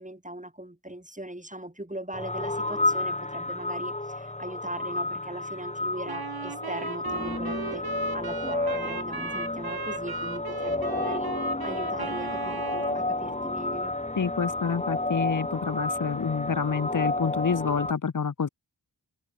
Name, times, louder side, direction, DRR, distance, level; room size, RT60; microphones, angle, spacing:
voice 1, 0.0-7.9 8.1-11.3 11.6-13.9, right 1 dB, 15° right, 6.9 m, -39 dB
really scary, 2.1-17.9, left 2 dB, 15° left, 1.1 m, -31 dB
Wind instrument woodwind instrument, 6.1-13.0, right 5 dB, 60° right, 1.3 m, -37 dB
voice 2, 14.2-18.5, left 6 dB, 45° left, 0.8 m, -28 dB
wide cardioid pair, 65°, 43 cm